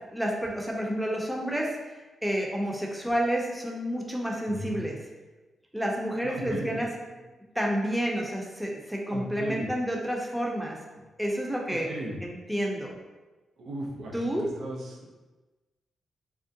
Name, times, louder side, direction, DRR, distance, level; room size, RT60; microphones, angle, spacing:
voice 1, 0.1-1.8 2.2-5.0 5.7-6.9 7.5-10.8 11.2-11.9 12.2-13.0 14.1-14.5, equal, 5° right, -1 dB, 0.6 m, -29 dB
voice 2, 4.5-4.8 6.2-7.2 9.1-9.7 11.7-12.2 13.6-15.1, right 1 dB, 80° right, -2 dB, 0.5 m, -37 dB
3.5 x 2.1 x 2.6 m, 1.2 s
cardioid pair, 65°, 0 cm